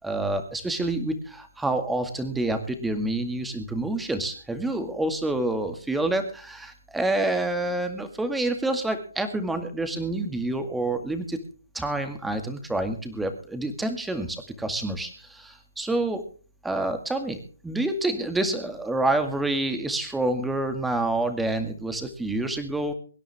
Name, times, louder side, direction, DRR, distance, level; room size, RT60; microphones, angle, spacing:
voice 1, 0.0-11.4 11.7-16.2 16.6-22.9, right 2 dB, 5° right, 8 dB, 2.0 m, -28 dB
24.0 x 10.5 x 3.5 m, 0.40 s
hypercardioid pair, 150°, 0 cm